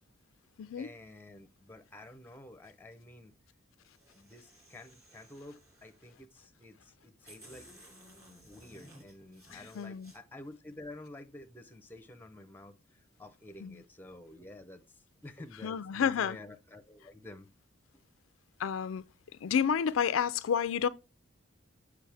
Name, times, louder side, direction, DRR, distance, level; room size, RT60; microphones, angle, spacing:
voice 1, 0.8-3.3 4.1-7.7 8.4-17.5 17.9-18.0, left 1 dB, 10° left, 0.7 m, -50 dB
sound 1, 3.8-6.2 6.8-6.9 7.2-10.2, equal, 15° right, 2.6 m, -57 dB
voice 2, 9.5-10.1 13.6-13.7 15.6-16.4 18.6-19.0 19.4-20.9, left 7 dB, 70° left, 0.4 m, -30 dB
7.5 x 5.0 x 3.4 m
head